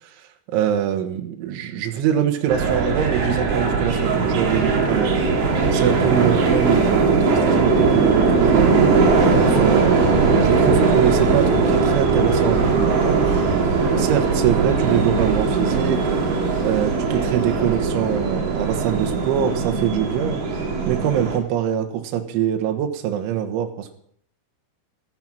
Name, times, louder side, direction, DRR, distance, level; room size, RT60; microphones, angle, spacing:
voice 1, 0.5-5.3 5.7-9.0 9.4-13.3 14.0-16.2 16.6-20.4 20.9-23.9, right 10 dB, 80° right, 4 dB, 3.6 m, -23 dB
sound 1, 2.5-21.4, right 4 dB, 55° right, 3.9 m, -19 dB
13.5 x 12.5 x 5.9 m, 0.65 s
omnidirectional pair, 5.6 m